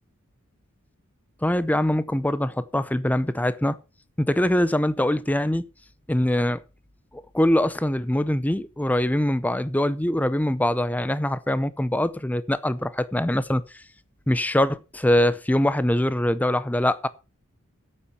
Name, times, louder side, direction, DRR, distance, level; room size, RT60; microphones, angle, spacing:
voice 1, 1.4-3.8 4.2-5.6 6.1-6.6 7.3-13.8 14.3-17.1, left 1 dB, 5° left, 0.6 m, -23 dB
9.6 x 8.7 x 5.8 m
head